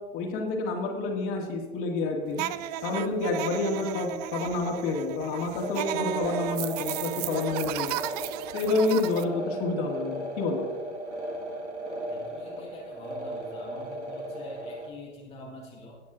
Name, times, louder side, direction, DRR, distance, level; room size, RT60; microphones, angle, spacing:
voice 1, 0.1-2.4 2.8-7.9 8.5-10.7, left 3 dB, 40° left, 1 dB, 2.1 m, -29 dB
sound 1, 2.3-9.2, right 13 dB, 35° right, 0.4 m, -34 dB
sound 2, 5.5-14.9, right 1 dB, 80° right, 1.8 m, -36 dB
voice 2, 12.1-16.0, left 1 dB, 20° left, -3 dB, 1.6 m, -45 dB
17.0 x 8.3 x 2.5 m, 1.4 s
figure-of-eight pair, 95°, 34 cm